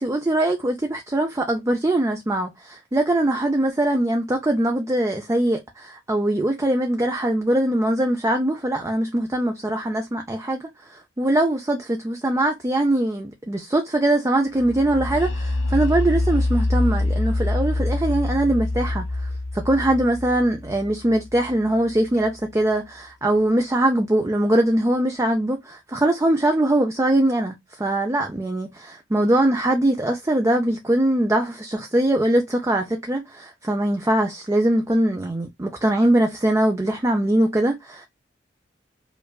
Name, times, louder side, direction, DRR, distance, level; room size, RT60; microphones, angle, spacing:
voice 1, 0.0-10.6 10.9-19.0 19.5-38.1, right 1 dB, 15° right, 0.5 m, -22 dB
sound 1, 14.6-22.3, left 2 dB, 85° left, 1.0 m, -25 dB
5.2 x 2.4 x 2.3 m
head